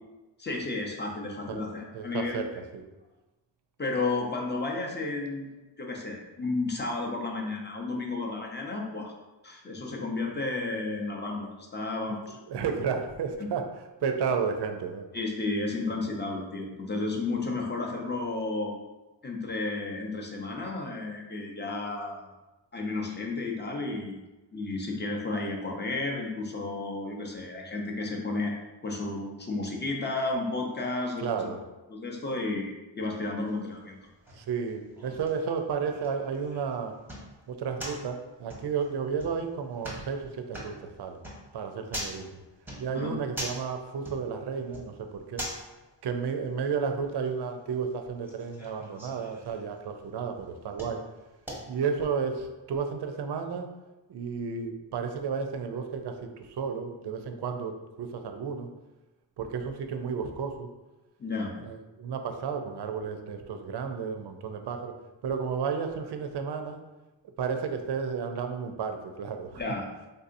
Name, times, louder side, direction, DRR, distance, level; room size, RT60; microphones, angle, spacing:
voice 1, 0.4-2.4 3.8-9.1 9.4-12.4 13.4-13.5 15.1-18.7 19.2-22.2 22.7-24.2 24.5-28.5 28.8-31.5 31.9-34.0 42.9-43.1 61.2-61.5 69.5-69.9, left 3 dB, 20° left, 0 dB, 0.6 m, -32 dB
voice 2, 1.9-2.5 2.7-2.8 12.5-13.6 14.0-15.1 31.2-31.6 34.4-36.9 37.5-41.2 41.5-42.4 42.8-45.5 46.0-51.0 51.7-53.7 54.1-58.7 59.4-60.7 61.6-64.9 65.2-66.8 67.4-69.6, right 6 dB, 60° right, 6 dB, 0.5 m, -32 dB
sound 1, 33.5-52.0, equal, 5° right, 0.8 m, -44 dB
3.6 x 2.7 x 2.5 m, 1.1 s
cardioid pair, 80°, 48 cm